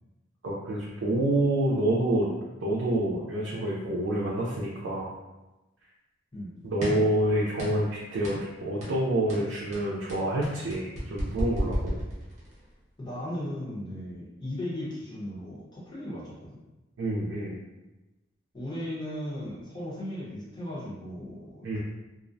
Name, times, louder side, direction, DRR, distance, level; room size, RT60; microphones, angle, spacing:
voice 1, 0.4-2.3 2.6-5.1 6.6-12.0 17.0-17.6 21.6-21.8, right 1 dB, 90° right, -5 dB, 0.5 m, -27 dB
sound 1, 6.8-7.1 7.6-7.9 8.2-8.5 8.8-9.0 9.3-12.6, equal, 40° right, 0.8 m, -32 dB
voice 2, 13.0-16.6 18.5-21.8, left 1 dB, 25° left, -8 dB, 0.8 m, -36 dB
2.3 x 2.0 x 2.5 m, 1.0 s
head